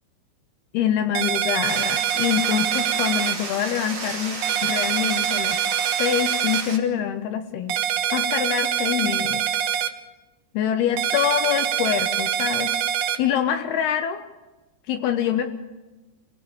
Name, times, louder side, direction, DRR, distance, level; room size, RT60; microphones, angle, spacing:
voice 1, 0.7-5.6 6.0-7.8 8.1-9.4 10.5-12.7 13.2-14.2 14.9-15.5, left 9 dB, 75° left, 7 dB, 3.0 m, -25 dB
sound 1, 1.2-3.4 4.4-6.6 7.7-9.9 11.0-13.2, right 10 dB, 70° right, 2.0 m, -24 dB
sound 2, 1.6-6.8, right 3 dB, 30° right, 2.8 m, -33 dB
27.0 x 17.5 x 8.8 m, 1.1 s
omnidirectional pair, 4.8 m